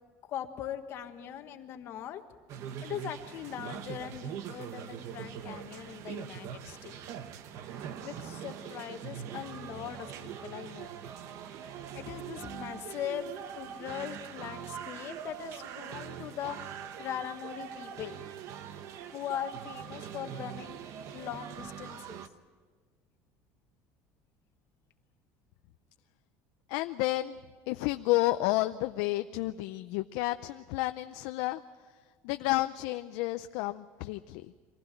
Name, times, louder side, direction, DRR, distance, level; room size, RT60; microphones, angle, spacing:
voice 1, 0.3-2.2 2.8-7.0 7.8-10.9 11.6-11.7 11.9-18.2 19.1-22.2, left 10 dB, 40° left, 7 dB, 1.4 m, -40 dB
sound 1, 2.5-22.3, right 9 dB, 50° right, 1.0 m, -42 dB
voice 2, 26.7-27.4 27.7-31.6 32.2-34.5, left 18 dB, 70° left, 9 dB, 0.5 m, -31 dB
24.5 x 15.5 x 9.0 m, 1.5 s
cardioid pair, 165°, 6 cm